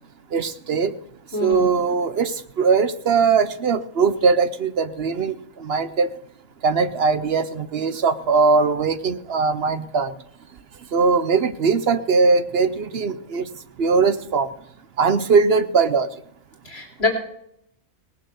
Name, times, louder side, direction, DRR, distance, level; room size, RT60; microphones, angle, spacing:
voice 1, 0.3-0.9 1.4-2.3 2.6-5.3 5.6-6.1 6.6-10.1 10.9-13.4 13.8-14.5 15.0-16.1, right 5 dB, 55° right, 13 dB, 0.9 m, -20 dB
voice 2, 1.3-1.7 16.6-17.1, left 3 dB, 50° left, 3 dB, 3.2 m, -25 dB
18.5 x 7.4 x 6.9 m, 0.72 s
omnidirectional pair, 1.4 m